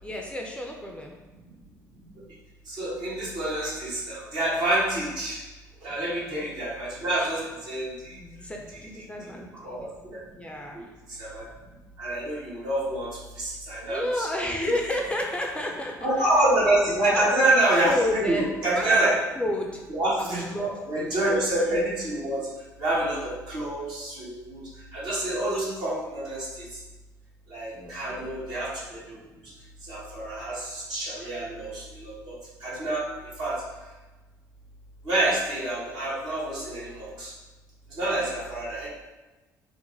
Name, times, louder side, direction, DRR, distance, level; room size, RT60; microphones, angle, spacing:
voice 1, 0.0-1.1 5.9-6.5 8.1-9.9 10.3-10.9 13.5-13.6 13.9-16.3 17.1-18.5 18.8-19.0 19.4-19.8 20.2-21.1 27.7-28.3, left 1 dB, 10° left, 0 dB, 0.6 m, -31 dB
voice 2, 2.7-5.4 5.8-8.2 9.6-10.2 10.7-11.4 12.0-14.5 16.0-19.1 19.9-22.5 22.8-26.7 27.5-29.2 29.9-33.1 33.4-33.6 35.0-37.3 38.0-38.9, right 1 dB, 55° right, -6 dB, 1.5 m, -27 dB
4.5 x 2.2 x 3.4 m, 1.2 s
figure-of-eight pair, 55°, 10 cm